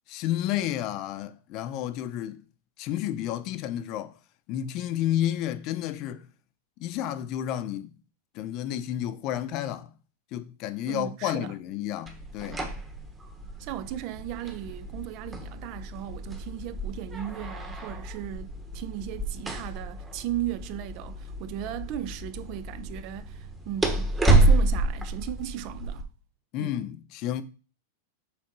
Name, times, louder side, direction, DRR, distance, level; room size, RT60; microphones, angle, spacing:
voice 1, 0.1-2.4 2.8-4.1 4.5-6.2 6.8-7.9 8.3-9.9 10.3-12.6 26.5-27.4, left 12 dB, 40° left, 0.6 m, -31 dB
voice 2, 10.9-11.5 13.6-26.1 26.6-26.8, right 13 dB, 45° right, 0.5 m, -36 dB
sound 1, 12.1-26.0, right 2 dB, 15° right, 1.1 m, -29 dB
7.2 x 3.5 x 4.6 m
supercardioid pair, 140°, 0 cm